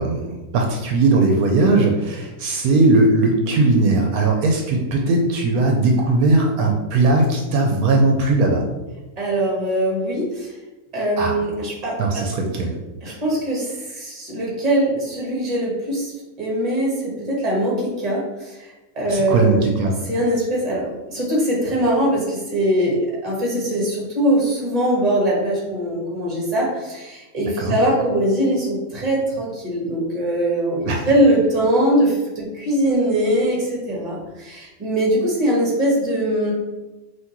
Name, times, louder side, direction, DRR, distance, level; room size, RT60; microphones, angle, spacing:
voice 1, 0.0-8.6 11.2-11.4 12.0-12.8 13.1-13.2 19.1-19.9 27.6-27.7 30.9-31.0, right 2 dB, 80° right, 2 dB, 1.1 m, -18 dB
voice 2, 9.2-10.5 10.9-12.3 13.0-16.1 16.4-19.7 20.0-36.5, right 1 dB, 25° right, -4 dB, 1.3 m, -21 dB
5.7 x 2.8 x 3.0 m, 1.1 s
omnidirectional pair, 1.6 m